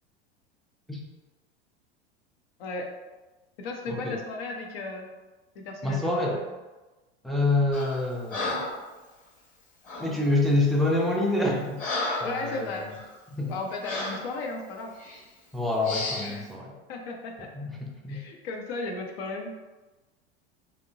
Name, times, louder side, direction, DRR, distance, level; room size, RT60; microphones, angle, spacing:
voice 1, 3.6-5.1 5.6-6.5 12.2-12.9 13.5-14.9 16.2-16.5 16.9-17.5 18.1-19.5, left 3 dB, 65° left, 2 dB, 0.6 m, -35 dB
voice 2, 5.8-6.4 7.2-8.6 10.0-11.8 12.2-12.7 13.3-13.5 15.5-16.7 17.5-18.2, left 2 dB, ahead, -2 dB, 0.3 m, -26 dB
Breathing, 7.7-8.0 8.3-8.8 9.8-10.1 10.8-11.0 11.4-12.4 12.9-13.1 13.8-14.2 15.0-15.2 15.8-16.3, left 2 dB, 25° left, 1.0 m, -32 dB
2.8 x 2.1 x 2.6 m, 1.2 s
hypercardioid pair, 90°, 33 cm